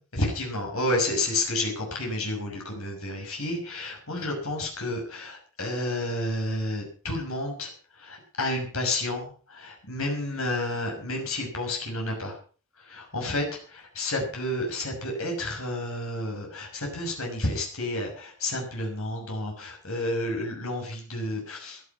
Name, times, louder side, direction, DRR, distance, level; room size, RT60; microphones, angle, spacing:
voice 1, 0.1-12.4 12.8-13.4 13.7-21.8, left 1 dB, 75° left, 1 dB, 6.1 m, -30 dB
16.5 x 11.5 x 5.8 m, 0.39 s
head